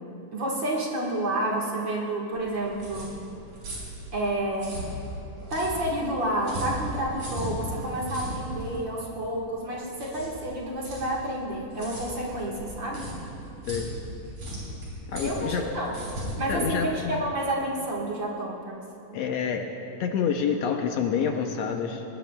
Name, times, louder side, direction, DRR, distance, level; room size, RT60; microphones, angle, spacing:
voice 1, 0.3-3.2 4.1-4.8 5.5-13.1 15.2-15.9 16.4-18.9, right 1 dB, 45° right, -4 dB, 1.8 m, -30 dB
sound 1, 2.3-17.5, equal, 65° right, 5.0 m, -37 dB
voice 2, 13.7-14.0 15.1-15.7 16.5-17.2 19.1-19.7 20.0-22.0, left 7 dB, 75° left, 4 dB, 1.6 m, -27 dB
20.5 x 19.0 x 2.2 m, 2.9 s
omnidirectional pair, 3.5 m